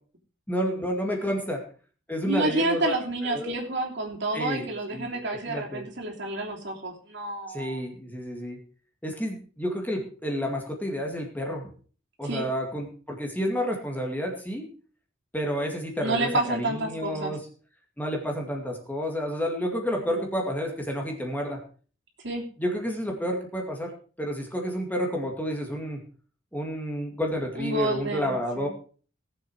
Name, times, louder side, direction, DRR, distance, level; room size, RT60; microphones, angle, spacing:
voice 1, 0.5-1.6 2.1-2.9 3.3-3.6 4.3-5.8 7.5-8.6 9.0-11.7 12.2-14.7 15.3-17.4 18.0-21.6 22.6-23.9 24.2-26.0 26.5-28.7, equal, 10° left, 1 dB, 2.3 m, -30 dB
voice 2, 2.3-7.8 12.2-12.4 16.0-17.3 19.9-20.4 22.2-22.4 27.5-28.7, right 2 dB, 60° right, 0 dB, 3.2 m, -29 dB
18.5 x 7.7 x 4.8 m, 0.40 s
head